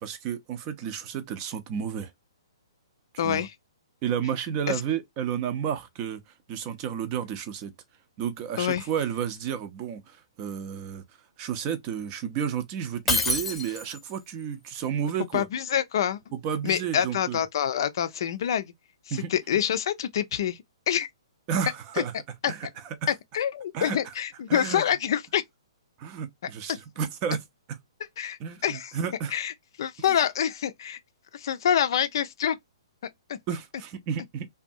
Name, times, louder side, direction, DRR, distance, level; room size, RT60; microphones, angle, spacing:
voice 1, 0.0-2.1 3.2-3.5 4.0-6.2 6.5-7.7 8.2-11.0 11.4-15.4 16.4-17.4 19.1-19.3 21.5-22.1 22.5-22.7 23.0-23.1 23.7-24.0 24.5-24.8 26.0-27.4 28.4-29.3 33.5-34.5, right 8 dB, 30° right, 0.5 m, -31 dB
voice 2, 3.2-3.5 4.7-4.8 8.6-8.9 15.3-16.2 16.6-18.7 19.1-21.1 22.0-22.1 22.4-22.5 23.1-25.4 26.7-26.8 28.2-29.0 29.3-29.5 29.8-31.0 31.3-32.6 33.3-33.4, left 9 dB, 55° left, 0.4 m, -26 dB
Shatter, 13.1-14.1, left 2 dB, 5° left, 0.8 m, -26 dB
2.6 x 2.3 x 2.6 m
hypercardioid pair, 130°, 3 cm